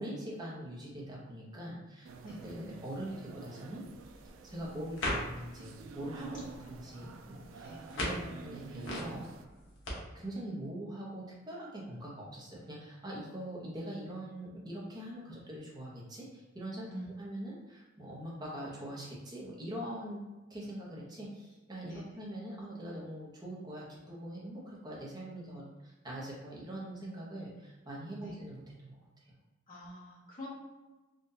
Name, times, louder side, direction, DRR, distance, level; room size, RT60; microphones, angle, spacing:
voice 1, 0.0-4.1 4.4-7.6 8.0-9.3 10.1-16.9 17.2-20.2 20.5-29.3, right 1 dB, 20° right, -5 dB, 0.8 m, -43 dB
sound 1, 2.0-9.4, right 4 dB, 90° right, 0.3 m, -49 dB
voice 2, 2.2-2.6 6.3-6.5 6.9-7.1 7.6-7.8 16.9-17.1 21.9-22.2 28.2-28.4 29.7-30.5, equal, 45° left, -7 dB, 1.2 m, -47 dB
sound 2, 3.8-9.9, left 1 dB, 75° left, 0.9 m, -41 dB
3.7 x 2.4 x 2.7 m, 1.1 s
head